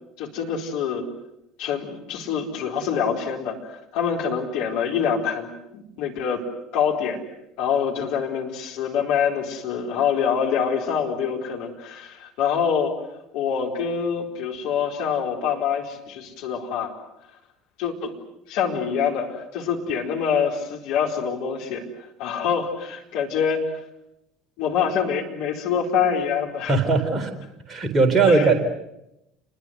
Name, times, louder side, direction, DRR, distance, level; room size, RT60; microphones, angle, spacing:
voice 1, 0.2-1.1 1.6-6.4 6.7-7.2 7.6-12.9 13.3-16.9 17.8-18.1 18.5-21.8 22.2-23.6 24.6-26.7 28.2-28.5, left 7 dB, 55° left, 0 dB, 4.2 m, -25 dB
voice 2, 26.7-27.3 27.7-28.5, right 3 dB, 25° right, 6 dB, 4.2 m, -19 dB
29.0 x 21.5 x 8.0 m, 0.85 s
figure-of-eight pair, 65°, 0 cm